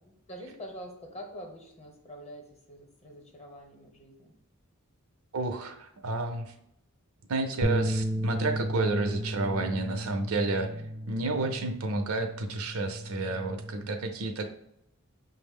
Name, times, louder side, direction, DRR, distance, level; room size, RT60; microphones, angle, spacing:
voice 1, 0.0-4.3 10.6-11.6, equal, 30° left, 2 dB, 0.8 m, -46 dB
voice 2, 5.3-6.5 7.3-10.7 11.1-14.4, right 3 dB, 75° right, 6 dB, 0.5 m, -30 dB
sound 1, 7.6-13.9, equal, 15° right, 0.4 m, -34 dB
5.4 x 2.0 x 3.5 m, 0.79 s
head